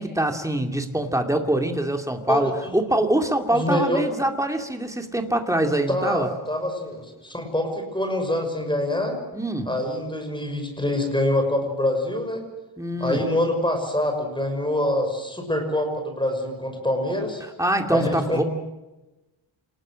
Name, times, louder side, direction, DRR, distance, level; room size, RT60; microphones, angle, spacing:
voice 1, 0.0-6.3 9.3-9.8 12.8-13.2 17.6-18.4, right 1 dB, 5° right, 5 dB, 2.4 m, -24 dB
voice 2, 2.3-3.0 3.5-4.0 5.9-9.2 9.7-12.4 13.0-17.4 17.9-18.4, left 1 dB, 10° left, 4 dB, 6.1 m, -25 dB
28.0 x 20.0 x 7.6 m, 1.0 s
wide cardioid pair, 165°, 49 cm